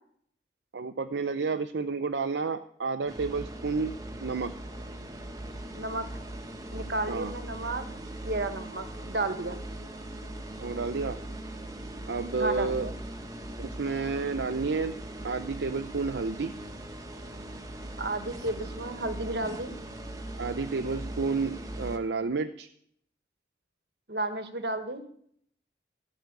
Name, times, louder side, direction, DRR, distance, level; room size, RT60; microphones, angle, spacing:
voice 1, 0.7-3.9 4.2-4.5 7.1-7.3 10.6-11.2 12.1-12.9 13.6-14.9 15.2-16.5 20.4-22.7, right 4 dB, 85° right, 8 dB, 0.6 m, -30 dB
sound 1, 3.1-22.0, right 1 dB, 20° right, 1.2 m, -40 dB
voice 2, 5.7-6.1 6.7-7.8 8.2-9.6 12.4-12.9 18.0-19.7 24.1-25.0, right 2 dB, 70° right, 9 dB, 1.4 m, -32 dB
15.5 x 6.2 x 9.5 m, 0.67 s
head